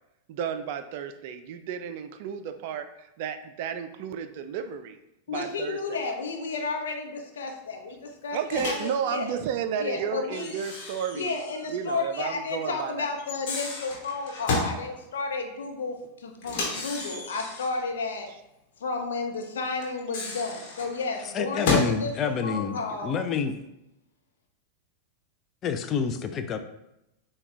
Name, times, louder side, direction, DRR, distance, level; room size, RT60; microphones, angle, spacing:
voice 1, 0.3-5.0 5.3-6.0 8.3-11.4 11.7-13.1 16.7-16.9, right 7 dB, 50° right, 9 dB, 0.4 m, -32 dB
voice 2, 5.3-9.3 9.8-10.5 11.1-18.3 18.8-23.2, left 4 dB, 65° left, 3 dB, 0.7 m, -32 dB
Microwave oven, 8.5-8.9 10.3-11.7 12.0-12.1 13.2-14.8 16.4-17.8 19.8-22.0, left 3 dB, 50° left, 1.1 m, -32 dB
voice 3, 21.3-23.5 25.6-26.6, left 6 dB, 30° left, 8 dB, 0.4 m, -28 dB
6.9 x 2.3 x 3.3 m, 0.87 s
figure-of-eight pair, 90°, 0 cm